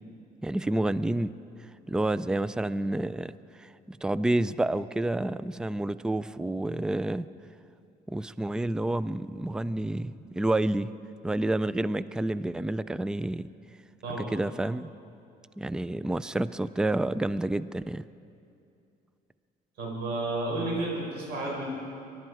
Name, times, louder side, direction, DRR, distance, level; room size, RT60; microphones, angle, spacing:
voice 1, 0.4-1.3 1.9-3.3 3.6-7.3 8.1-10.9 11.2-13.5 14.1-14.9 15.6-18.1, right 1 dB, 5° right, 16 dB, 0.3 m, -29 dB
voice 2, 19.8-21.6, right 2 dB, 75° right, -2 dB, 5.1 m, -31 dB
24.0 x 12.0 x 4.8 m, 2.6 s
cardioid pair, 110°, 17 cm